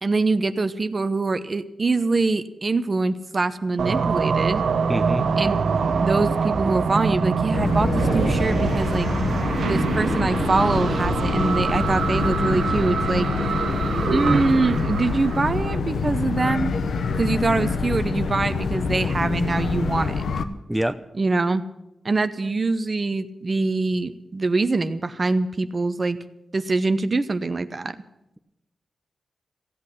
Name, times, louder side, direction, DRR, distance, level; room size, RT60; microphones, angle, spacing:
voice 1, 0.0-4.6 5.4-5.5 6.0-9.1 9.6-13.3 14.1-16.8 17.1-20.2 21.2-21.6 22.0-26.2 26.5-28.0, right 3 dB, 40° right, 11 dB, 0.8 m, -24 dB
sound 1, 3.8-15.8, right 5 dB, 80° right, 0.9 m, -24 dB
voice 2, 4.9-5.3 20.7-21.0, right 1 dB, 5° right, 8 dB, 0.8 m, -24 dB
sound 2, 7.5-20.4, left 4 dB, 85° left, 0.9 m, -26 dB
15.5 x 8.5 x 9.9 m, 0.90 s
cardioid pair, 80°, 0 cm